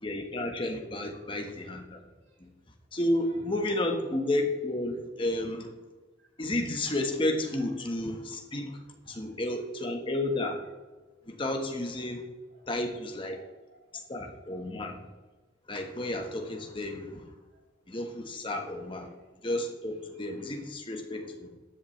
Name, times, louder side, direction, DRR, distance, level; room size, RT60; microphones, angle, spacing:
voice 1, 0.0-2.0 2.4-2.5 2.9-5.7 6.4-8.8 9.1-10.6 11.3-12.2 12.7-13.4 14.1-15.0 15.7-17.2 17.9-19.1 19.4-21.5, left 1 dB, 25° left, 4 dB, 1.4 m, -32 dB
voice 2, 1.1-1.5 2.2-2.4 3.2-4.0 6.2-6.3 7.5-7.9 9.1-9.4 12.5-12.8 13.2-14.7 17.5-17.6 19.0-19.1 21.4-21.5, right 1 dB, 85° right, -1 dB, 3.9 m, -60 dB
13.5 x 10.5 x 3.3 m, 1.2 s
head